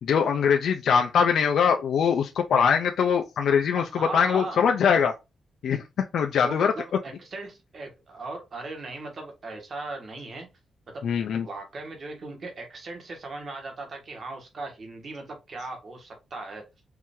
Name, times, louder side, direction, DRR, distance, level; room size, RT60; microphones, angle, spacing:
voice 1, 0.0-5.1 5.6-6.7 11.0-11.5, left 7 dB, 70° left, 0.6 m, -22 dB
voice 2, 3.7-4.6 6.4-10.5 10.9-11.0 11.4-16.7, right 3 dB, 40° right, 1.5 m, -38 dB
4.7 x 2.8 x 3.6 m
wide cardioid pair, 160°, 0 cm